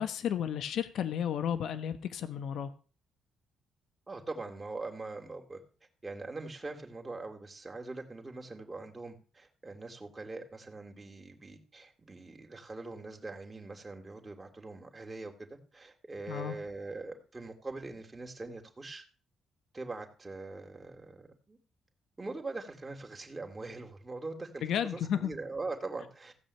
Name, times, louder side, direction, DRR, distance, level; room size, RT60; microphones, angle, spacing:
voice 1, 0.0-2.7 16.3-16.5 24.6-25.3, left 9 dB, 75° left, 10 dB, 1.3 m, -33 dB
voice 2, 4.1-5.6 6.0-15.5 15.7-19.0 19.7-21.6 22.2-26.3, right 3 dB, 20° right, 2 dB, 3.5 m, -42 dB
16.0 x 5.4 x 8.9 m, 0.37 s
cardioid pair, 90°, 0 cm